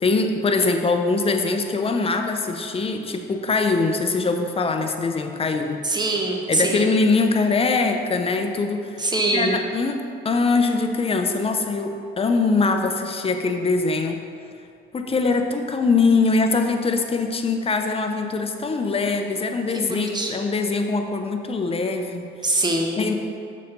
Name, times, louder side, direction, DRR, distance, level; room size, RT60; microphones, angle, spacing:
voice 1, 0.0-5.8 6.5-9.0 9.3-14.2 14.9-22.3 23.0-23.1, left 3 dB, 30° left, 5 dB, 0.6 m, -22 dB
voice 2, 5.8-6.9 9.0-9.6 19.7-20.3 22.4-23.1, right 2 dB, 20° right, 1 dB, 1.0 m, -23 dB
6.6 x 4.2 x 5.2 m, 2.5 s
cardioid pair, 90°, 20 cm